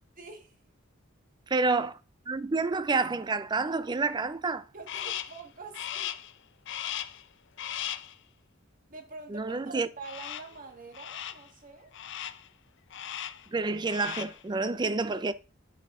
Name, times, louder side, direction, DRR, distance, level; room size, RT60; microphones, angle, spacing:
voice 1, 0.2-0.5 4.7-6.1 8.9-11.9, right 4 dB, 40° right, 1.6 m, -45 dB
voice 2, 1.5-1.9 2.3-4.6 9.3-9.9 13.5-15.3, right 3 dB, 20° right, 0.4 m, -28 dB
Crow, 4.9-5.4 5.7-6.3 6.7-7.2 7.6-8.1 10.0-10.6 10.9-11.5 11.9-12.5 12.9-13.5 13.8-14.4, left 11 dB, 60° left, 0.5 m, -37 dB
9.2 x 5.8 x 3.6 m
head